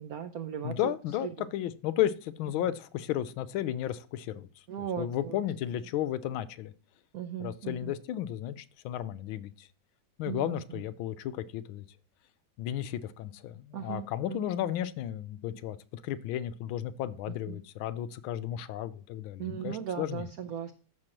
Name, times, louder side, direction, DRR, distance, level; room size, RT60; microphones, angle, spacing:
voice 1, 0.0-0.9 2.6-2.7 4.7-5.4 7.1-7.9 10.3-10.8 13.7-14.4 17.5-17.6 19.4-20.7, right 9 dB, 70° right, 0.9 m, -37 dB
voice 2, 0.6-4.5 4.8-6.7 7.4-9.7 10.2-11.8 12.6-20.3, left 11 dB, 90° left, 1.4 m, -33 dB
14.0 x 6.0 x 2.9 m
omnidirectional pair, 2.2 m